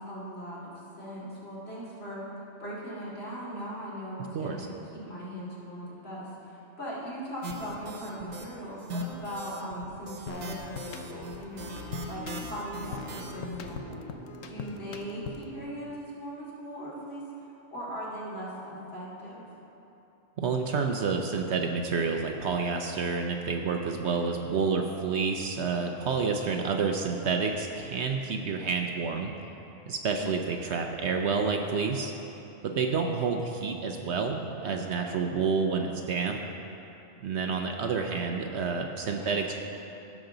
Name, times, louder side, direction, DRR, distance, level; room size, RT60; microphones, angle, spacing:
voice 1, 0.1-0.7 1.0-2.2 2.6-11.7 12.1-14.0 14.5-19.5 30.1-30.4 39.1-39.4, equal, 50° left, -8 dB, 2.8 m, -39 dB
sound 1, 7.4-8.5 8.8-13.7, equal, 80° right, 1.3 m, -40 dB
sound 2, 10.3-15.6, left 6 dB, 75° left, 1.0 m, -42 dB
sound 3, 10.3-15.7, right 3 dB, 25° right, 0.8 m, -49 dB
voice 2, 20.4-29.3 29.9-32.1 32.6-36.4 37.2-39.6, right 5 dB, 65° right, 3 dB, 0.9 m, -29 dB
16.5 x 6.3 x 3.9 m, 3.0 s
omnidirectional pair, 1.4 m